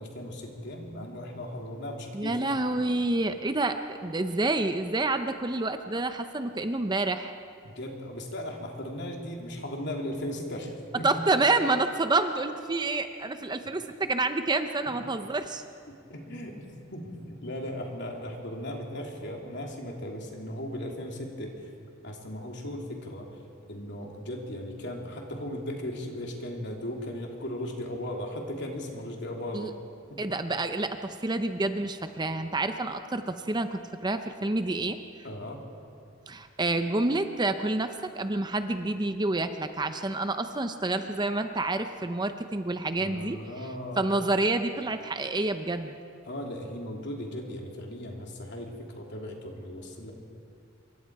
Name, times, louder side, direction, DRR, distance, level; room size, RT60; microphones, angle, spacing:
voice 1, 0.0-2.5 7.6-11.1 16.1-21.7 22.0-23.3 23.7-29.7 30.1-30.2 35.2-35.6 43.0-44.0 46.2-50.1, left 1 dB, 55° left, 1 dB, 3.1 m, -37 dB
voice 2, 2.1-7.3 11.0-15.6 29.5-29.7 30.2-35.0 36.3-43.4 44.0-45.9, right 2 dB, 20° right, 8 dB, 0.7 m, -28 dB
26.5 x 24.0 x 4.8 m, 2.3 s
head